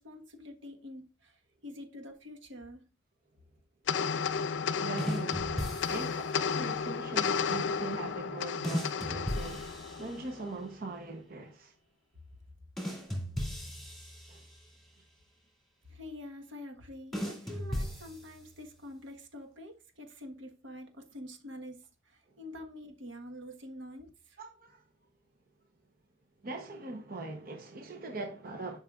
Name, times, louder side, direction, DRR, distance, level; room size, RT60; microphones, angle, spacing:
voice 1, 0.0-2.9 15.9-24.4, left 1 dB, 80° right, 1.3 m, -47 dB
sound 1, 3.9-10.5, left 6 dB, 75° left, 0.5 m, -33 dB
voice 2, 4.8-11.7 14.3-14.5 24.4-24.9 26.4-28.8, right 3 dB, 50° right, 0.8 m, -41 dB
sound 2, 5.0-6.4 8.6-10.6 12.8-14.9 17.1-18.7, equal, ahead, 2.4 m, -37 dB
11.0 x 5.6 x 2.4 m
head